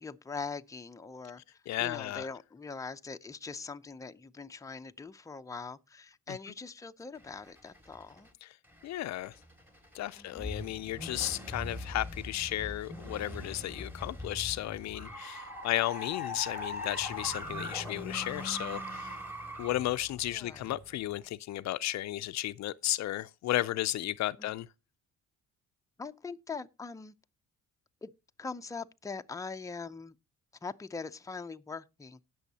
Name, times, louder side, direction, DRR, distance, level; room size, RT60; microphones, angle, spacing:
voice 1, 0.0-8.3 10.2-10.5 20.3-20.7 24.4-24.5 26.0-27.1 28.0-28.1 28.4-30.2 30.6-32.2, left 4 dB, 10° left, 0.5 m, -42 dB
voice 2, 1.7-2.3 6.3-6.4 8.4-8.5 8.8-9.3 9.9-19.1 19.6-24.7, left 14 dB, 65° left, 0.4 m, -34 dB
sound 1, 7.2-8.3 8.7-21.3, left 1 dB, 5° right, 2.1 m, -41 dB
18.5 x 6.3 x 2.8 m
cardioid pair, 90°, 30 cm